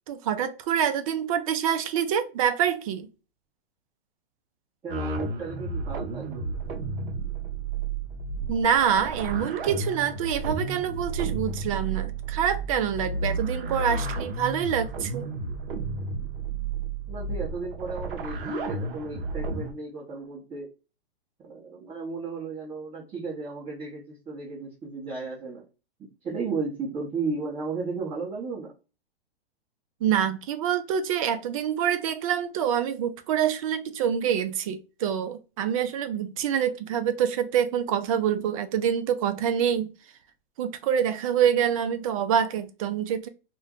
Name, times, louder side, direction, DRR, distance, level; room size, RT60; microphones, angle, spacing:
voice 1, 0.1-3.1 8.5-15.3 30.0-39.9 40.6-43.3, right 8 dB, 35° right, 0.4 m, -26 dB
voice 2, 4.8-6.4 17.1-20.7 21.4-25.7 26.0-28.7, right 4 dB, 20° right, 1.0 m, -34 dB
sound 1, 4.9-19.7, right 3 dB, 60° right, 0.7 m, -32 dB
2.5 x 2.2 x 3.6 m
hypercardioid pair, 130°, 31 cm